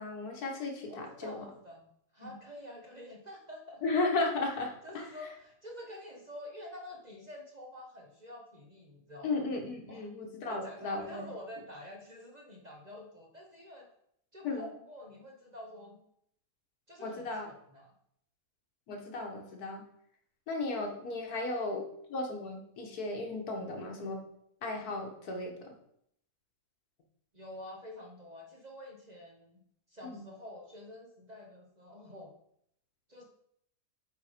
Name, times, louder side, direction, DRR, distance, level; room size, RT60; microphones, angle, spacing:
voice 1, 0.0-1.4 2.2-2.3 3.8-5.0 9.2-11.3 14.4-14.7 17.0-17.5 18.9-19.8 20.5-24.2 24.6-25.7 30.1-30.2, left 3 dB, 75° left, 2 dB, 1.8 m, -35 dB
voice 2, 0.9-1.9 2.1-3.8 4.8-9.4 9.9-10.1 10.5-13.9 14.3-16.0 16.9-17.9 21.2-21.4 27.3-32.3 33.1-33.2, left 1 dB, 30° right, 0 dB, 1.0 m, -48 dB
8.0 x 3.8 x 5.0 m, 0.70 s
omnidirectional pair, 1.6 m